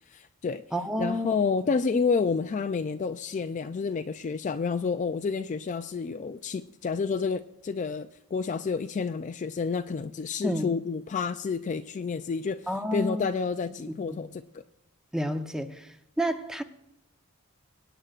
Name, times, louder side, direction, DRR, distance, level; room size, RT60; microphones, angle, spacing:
voice 1, 0.1-0.6 1.0-14.6, left 5 dB, 35° left, 0.3 m, -29 dB
voice 2, 0.7-1.3 10.4-10.7 12.7-13.3 14.1-14.2 15.1-15.9 16.2-16.6, equal, 5° right, 0.7 m, -29 dB
24.0 x 9.0 x 2.4 m
head